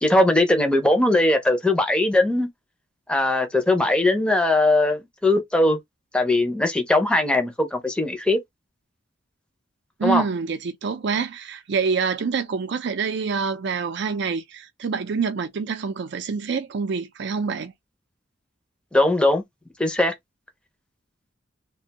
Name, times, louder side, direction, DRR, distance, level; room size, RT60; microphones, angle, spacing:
voice 1, 0.0-2.5 3.1-5.8 6.1-8.4 10.0-10.2 18.9-19.4 19.8-20.1, left 2 dB, 5° left, 0.5 m, -20 dB
voice 2, 10.0-17.7, right 5 dB, 65° right, 0.4 m, -26 dB
2.5 x 2.2 x 2.8 m
head